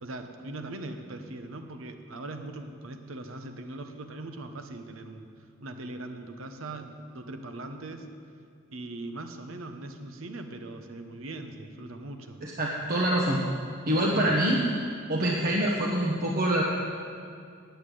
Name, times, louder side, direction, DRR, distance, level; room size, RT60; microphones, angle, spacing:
voice 1, 0.0-5.3 5.6-8.1 8.7-12.4, right 2 dB, 80° right, 7 dB, 0.9 m, -40 dB
voice 2, 12.4-13.4 13.9-14.6 15.1-16.6, right 1 dB, 50° right, -2 dB, 1.0 m, -25 dB
8.6 x 8.0 x 9.2 m, 2.3 s
head